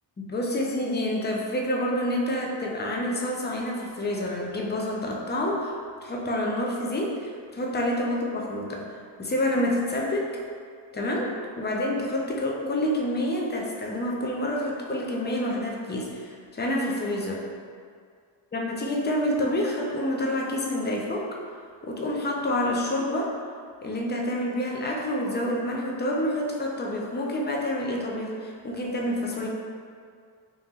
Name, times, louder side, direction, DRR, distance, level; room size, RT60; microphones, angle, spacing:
voice 1, 0.2-5.7 6.0-10.3 10.9-11.3 11.6-17.4 18.5-21.3 21.8-23.3 23.8-29.5, left 1 dB, 20° left, -2 dB, 0.4 m, -28 dB
3.0 x 2.8 x 3.5 m, 2.1 s
wide cardioid pair, 105°, 48 cm